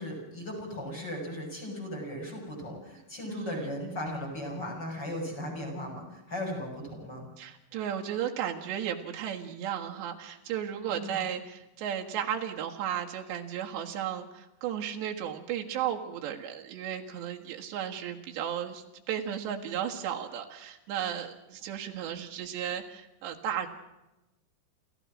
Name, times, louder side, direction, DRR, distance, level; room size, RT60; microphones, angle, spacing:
voice 1, 0.0-7.3 10.9-11.2, left 1 dB, 25° left, 1 dB, 7.4 m, -37 dB
voice 2, 3.3-3.7 7.4-23.7, right 9 dB, 90° right, 1 dB, 4.0 m, -34 dB
28.0 x 15.0 x 6.3 m, 0.97 s
omnidirectional pair, 4.9 m